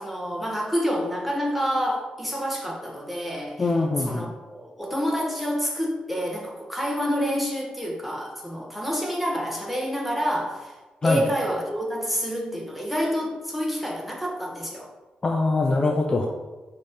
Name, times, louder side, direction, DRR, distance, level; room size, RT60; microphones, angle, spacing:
voice 1, 0.0-3.7 4.0-10.7 11.0-14.9, equal, ahead, -2 dB, 0.8 m, -28 dB
voice 2, 3.6-4.3 11.0-11.2 15.2-16.3, left 3 dB, 30° left, 2 dB, 0.3 m, -23 dB
5.1 x 2.7 x 3.5 m, 1.2 s
wide cardioid pair, 130°, 3 cm